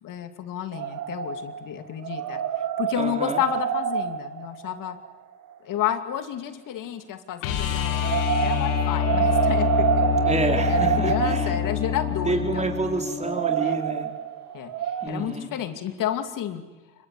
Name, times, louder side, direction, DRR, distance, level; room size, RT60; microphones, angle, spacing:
voice 1, 0.0-2.4 2.8-5.0 5.6-10.2 10.7-12.6 13.6-13.8 14.5-14.7 15.1-16.6, left 10 dB, 65° left, 8 dB, 2.7 m, -31 dB
sound 1, 0.7-1.7 2.0-5.2 7.9-15.1, right 9 dB, 60° right, 2.2 m, -27 dB
voice 2, 2.9-3.4 10.2-11.6 12.2-14.1 15.0-15.5, right 3 dB, 20° right, 4 dB, 4.3 m, -28 dB
sound 2, 7.4-13.4 15.9-16.0, left 9 dB, 85° left, 3.1 m, -26 dB
25.5 x 23.0 x 8.5 m, 1.2 s
supercardioid pair, 70°, 34 cm